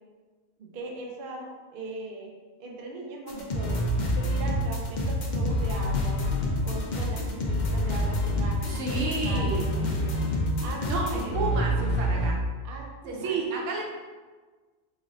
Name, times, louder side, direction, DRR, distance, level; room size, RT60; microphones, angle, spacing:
voice 1, 0.6-2.3 2.6-3.8 4.2-6.2 6.6-10.2 10.6-11.6 12.6-13.4, right 2 dB, 55° right, 0 dB, 0.7 m, -39 dB
sound 1, 3.3-12.3, equal, 50° left, 0.6 m, -27 dB
voice 2, 8.7-9.6 10.9-12.4 13.1-13.8, right 3 dB, 85° right, -1 dB, 1.1 m, -31 dB
3.0 x 2.5 x 4.0 m, 1.4 s
omnidirectional pair, 1.3 m